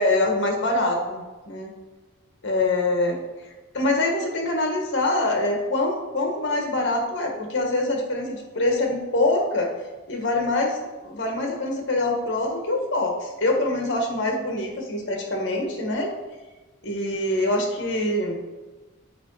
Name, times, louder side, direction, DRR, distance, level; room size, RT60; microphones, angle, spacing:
voice 1, 0.0-1.7 2.4-3.2 3.7-9.7 10.1-10.8 11.0-16.1 16.8-18.4, left 2 dB, 55° left, 2 dB, 1.3 m, -24 dB
7.0 x 4.7 x 4.6 m, 1.2 s
head